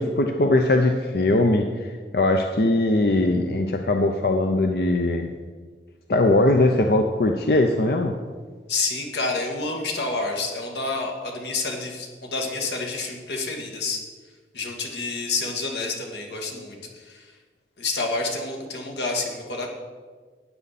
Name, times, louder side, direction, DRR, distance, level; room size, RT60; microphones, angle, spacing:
voice 1, 0.0-5.3 6.1-8.1, left 2 dB, 60° left, 4 dB, 0.7 m, -20 dB
voice 2, 8.7-14.0 14.5-17.4 17.8-19.7, left 3 dB, 80° left, 1 dB, 2.0 m, -29 dB
12.5 x 9.6 x 4.2 m, 1.5 s
head